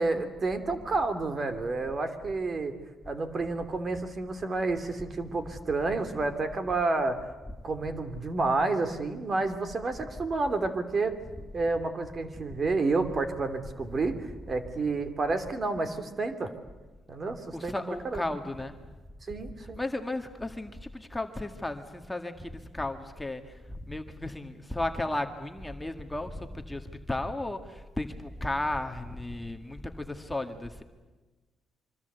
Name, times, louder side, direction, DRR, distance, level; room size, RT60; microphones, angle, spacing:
voice 1, 0.0-2.7 3.0-7.2 7.6-11.1 11.5-16.5 17.1-18.2 19.3-19.8, right 3 dB, 40° right, 9 dB, 3.0 m, -30 dB
voice 2, 11.2-11.7 13.8-14.0 14.3-14.5 17.5-18.8 19.6-30.8, left 2 dB, 10° left, 5 dB, 1.9 m, -35 dB
25.5 x 24.5 x 8.2 m, 1.2 s
cardioid pair, 90°, 0 cm